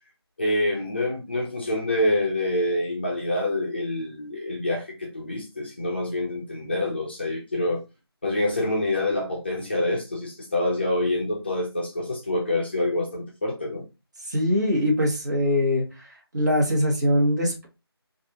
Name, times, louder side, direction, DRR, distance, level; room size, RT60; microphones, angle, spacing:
voice 1, 0.4-7.8 8.2-13.8, left 1 dB, 25° left, 0.6 m, -26 dB
voice 2, 14.3-16.1 16.3-17.7, left 1 dB, 40° right, 1.5 m, -22 dB
4.5 x 2.5 x 2.9 m
figure-of-eight pair, 170°, 14 cm